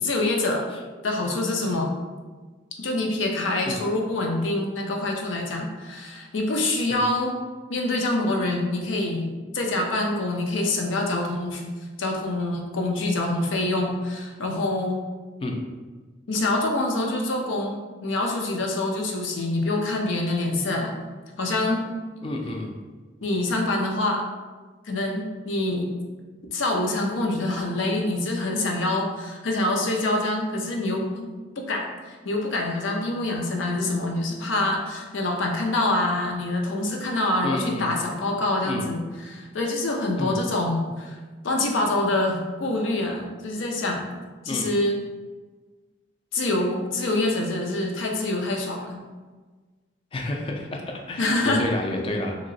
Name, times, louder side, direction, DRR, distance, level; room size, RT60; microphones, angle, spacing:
voice 1, 0.0-0.7 1.0-1.9 2.8-7.4 7.7-9.3 9.5-11.6 12.0-15.0 16.3-21.0 21.4-21.8 23.2-24.2 24.8-25.9 26.5-31.3 31.6-41.2 41.4-44.1 44.4-45.0 46.3-49.0 51.2-51.6, left 2 dB, 90° left, 1 dB, 0.6 m, -25 dB
voice 2, 22.2-22.7 37.4-38.0 38.6-38.9 40.2-40.4 44.5-44.7 50.1-52.4, left 1 dB, 30° left, 1 dB, 0.3 m, -30 dB
2.9 x 2.9 x 2.6 m, 1.3 s
head